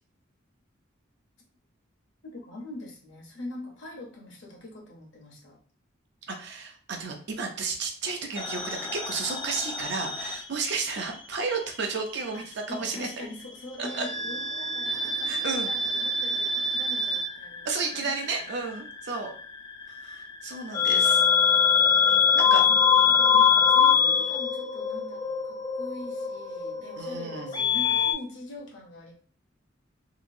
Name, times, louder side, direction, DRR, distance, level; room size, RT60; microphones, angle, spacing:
voice 1, 2.2-5.6 12.3-18.3 22.4-29.1, left 2 dB, 65° left, -2 dB, 0.9 m, -43 dB
voice 2, 6.3-13.1 13.8-14.1 15.2-15.7 17.6-19.3 19.9-21.2 22.3-22.6 27.0-27.6, right 4 dB, 60° right, 3 dB, 0.6 m, -32 dB
sound 1, 8.4-11.2 11.5-12.6 13.8-28.1, left 6 dB, 25° left, 0.4 m, -25 dB
2.9 x 2.5 x 2.6 m, 0.43 s
head